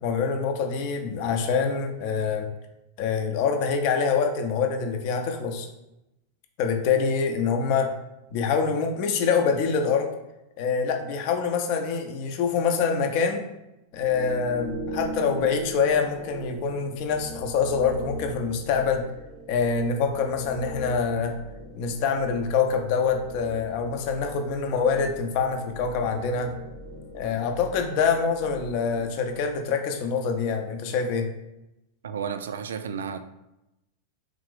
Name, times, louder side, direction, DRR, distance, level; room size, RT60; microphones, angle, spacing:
voice 1, 0.0-2.5 3.0-5.7 6.6-7.9 8.3-10.1 10.6-13.4 13.9-19.0 19.5-21.4 21.7-26.5 27.1-31.3, left 5 dB, 45° left, 0.6 m, -25 dB
sound 1, 13.9-29.7, right 1 dB, ahead, 0.8 m, -40 dB
voice 2, 32.0-33.2, right 7 dB, 65° right, 0.3 m, -32 dB
3.8 x 3.3 x 3.3 m
figure-of-eight pair, 90°, 0 cm